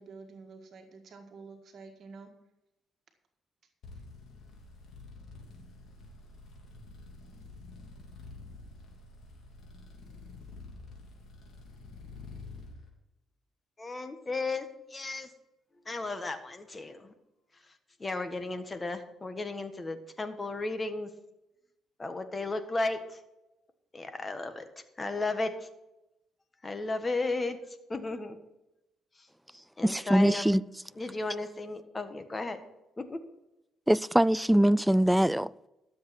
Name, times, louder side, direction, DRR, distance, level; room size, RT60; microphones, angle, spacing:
voice 1, 0.0-2.3, right 4 dB, 60° right, 1.7 m, -49 dB
sound 1, 3.8-12.7, left 3 dB, 60° left, 3.0 m, -48 dB
voice 2, 13.8-15.3 15.8-17.1 18.0-21.1 22.0-23.2 23.9-24.7 25.0-25.5 26.6-27.6 27.9-28.4 29.8-30.4 31.0-32.6 33.0-33.2, left 3 dB, 25° left, 1.4 m, -34 dB
voice 3, 29.8-30.6 33.9-35.7, right 1 dB, 5° right, 0.3 m, -23 dB
12.5 x 7.5 x 5.9 m
cardioid pair, 90°, 0 cm